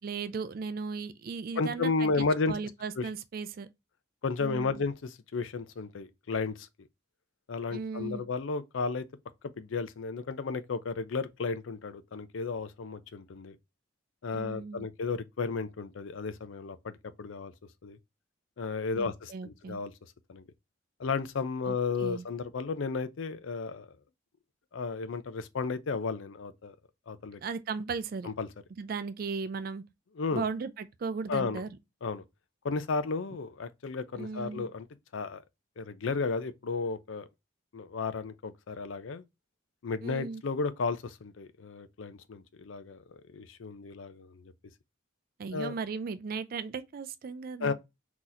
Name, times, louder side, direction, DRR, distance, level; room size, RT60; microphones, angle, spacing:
voice 1, 0.0-3.7 4.4-4.8 7.7-8.2 14.3-14.9 18.9-19.8 21.7-22.2 27.4-28.3 28.8-29.8 30.3-31.7 34.1-34.7 40.0-40.4 45.4-47.7, right 5 dB, 50° right, 0.4 m, -36 dB
voice 2, 1.6-2.6 3.0-3.1 4.2-6.7 7.5-9.0 9.6-13.6 14.2-16.9 17.2-17.5 17.8-18.0 18.6-19.9 20.3-20.4 21.0-23.9 24.7-26.7 27.1-27.4 28.2-28.5 30.2-30.4 31.3-31.6 32.0-32.2 32.6-34.9 35.1-35.4 35.8-37.3 37.7-39.2 39.8-43.0 43.3-44.5 45.5-45.7 47.6-47.7, left 4 dB, 80° left, 0.5 m, -33 dB
3.9 x 2.9 x 2.5 m
head